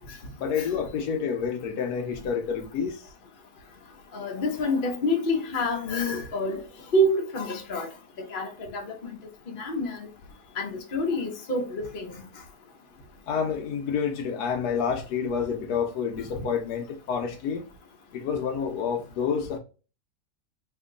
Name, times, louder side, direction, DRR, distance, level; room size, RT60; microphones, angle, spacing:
voice 1, 0.4-3.0 13.3-17.6 18.1-19.6, left 6 dB, 75° left, 1.1 m, -28 dB
voice 2, 4.1-6.6 6.9-7.9 8.3-8.8 9.6-10.0 10.6-12.1, left 1 dB, 50° left, 0.6 m, -27 dB
2.8 x 2.5 x 3.6 m
omnidirectional pair, 1.8 m